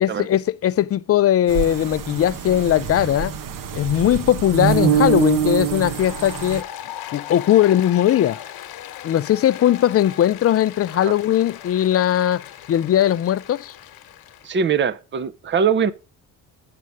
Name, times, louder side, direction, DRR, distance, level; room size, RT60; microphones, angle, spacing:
voice 1, 0.0-3.3 3.7-6.6 7.1-8.4 9.0-12.4 12.7-13.7, left 11 dB, 40° left, 0.4 m, -19 dB
sound 1, 1.5-6.6, right 8 dB, 55° right, 1.0 m, -24 dB
Applause, 5.8-14.5, left 11 dB, 65° left, 1.2 m, -38 dB
voice 2, 14.4-15.9, right 6 dB, 30° right, 0.7 m, -22 dB
7.6 x 5.5 x 4.7 m
cardioid pair, 85°, 39 cm